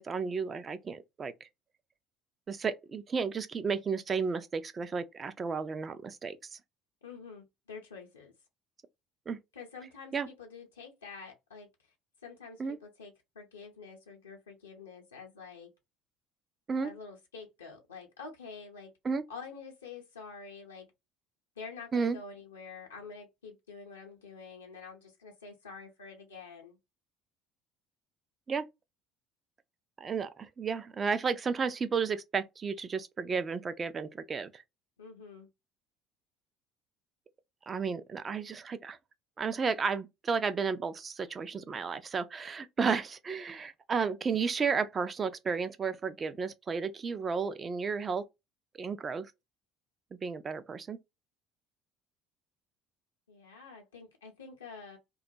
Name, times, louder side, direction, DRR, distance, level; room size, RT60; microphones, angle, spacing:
voice 1, 0.0-1.5 2.5-6.6 9.3-9.4 10.1-10.3 12.6-12.8 16.7-16.9 19.0-19.2 21.9-22.2 28.5-28.7 30.0-34.6 37.7-39.0 39.4-48.3 48.8-49.3 50.1-51.0, right 5 dB, 30° right, 0.4 m, -33 dB
voice 2, 7.0-8.3 9.5-11.7 12.2-15.7 16.8-18.9 19.3-20.9 21.6-26.8 35.0-35.5 53.3-55.0, left 5 dB, 80° left, 0.6 m, -47 dB
2.3 x 2.1 x 2.6 m
figure-of-eight pair, 60°, 0 cm